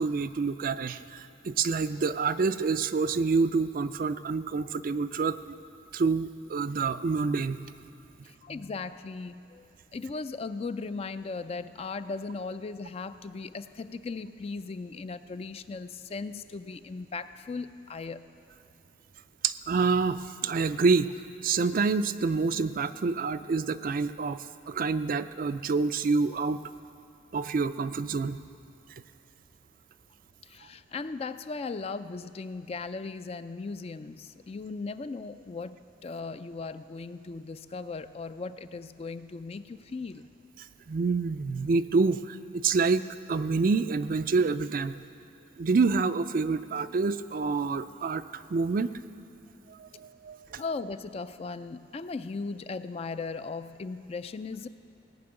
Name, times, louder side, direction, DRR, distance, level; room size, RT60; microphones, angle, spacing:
voice 1, 0.0-5.6 5.9-7.6 19.4-21.1 21.4-26.6 27.3-28.4 40.9-45.0 45.6-48.9 49.7-50.6, right 4 dB, 50° right, 12 dB, 0.4 m, -27 dB
voice 2, 8.4-9.7 9.9-18.2 30.4-40.3 50.6-54.7, left 4 dB, 35° left, 11 dB, 0.4 m, -37 dB
17.5 x 6.0 x 8.8 m, 2.8 s
head